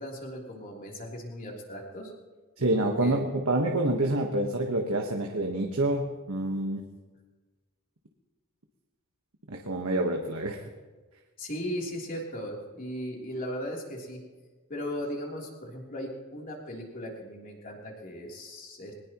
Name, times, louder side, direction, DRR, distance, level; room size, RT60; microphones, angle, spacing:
voice 1, 0.0-2.1 2.7-3.2 11.4-14.2 14.7-18.9, equal, 40° left, -1 dB, 3.4 m, -37 dB
voice 2, 2.6-6.8 9.5-10.6, right 1 dB, 80° right, 2 dB, 1.4 m, -27 dB
22.0 x 19.5 x 3.1 m, 1.3 s
head